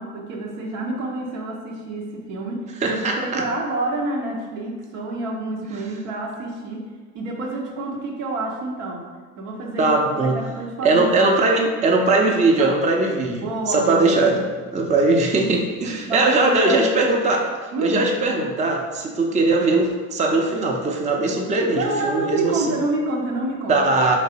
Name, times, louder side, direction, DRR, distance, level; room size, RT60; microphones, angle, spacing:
voice 1, 0.0-6.9 7.1-9.0 9.4-9.9 10.2-11.7 12.0-12.9 13.3-14.2 15.9-17.1 17.7-18.1 21.7-23.9, right 2 dB, 75° right, -1 dB, 0.8 m, -28 dB
voice 2, 2.8-3.5 9.8-10.4 10.8-14.4 14.7-17.5 17.8-22.8 23.7-24.2, right 2 dB, 20° right, 1 dB, 0.5 m, -20 dB
3.2 x 3.0 x 2.7 m, 1.4 s
hypercardioid pair, 65°, 39 cm